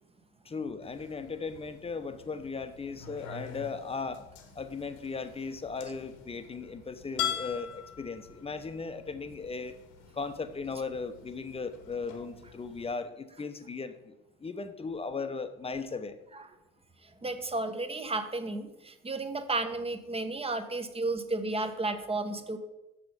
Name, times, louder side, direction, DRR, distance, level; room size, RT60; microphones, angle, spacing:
voice 1, 0.4-4.2 4.5-9.7 10.2-14.1 14.4-16.1, left 4 dB, 20° left, 10 dB, 0.8 m, -37 dB
sound 1, 0.8-12.9, left 9 dB, 70° left, 1.3 m, -43 dB
voice 2, 17.0-22.6, right 2 dB, 20° right, 8 dB, 0.9 m, -33 dB
6.6 x 6.2 x 5.1 m, 0.98 s
hypercardioid pair, 65°, 33 cm